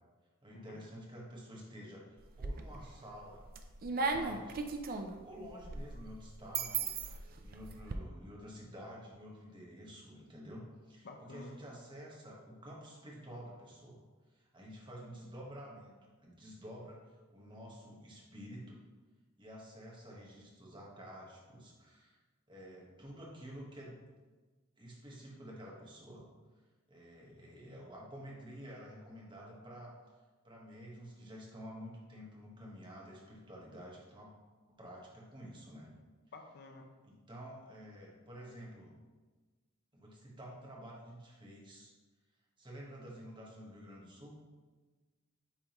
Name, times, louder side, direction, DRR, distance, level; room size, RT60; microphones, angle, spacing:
voice 1, 0.4-3.4 4.0-4.6 5.2-14.0 14.3-15.9 16.2-18.8 19.4-22.2 22.5-24.0 24.8-26.2 26.9-30.0 30.4-34.3 34.7-35.9 37.0-38.9 39.9-41.9 42.6-44.3, equal, 20° right, -3 dB, 1.3 m, -50 dB
sound 1, 2.2-2.9 3.3-7.9, right 4 dB, 45° right, 0.5 m, -37 dB
voice 2, 11.0-11.6 36.3-36.9, left 3 dB, 50° left, 4 dB, 0.6 m, -51 dB
8.9 x 3.7 x 3.0 m, 1.3 s
head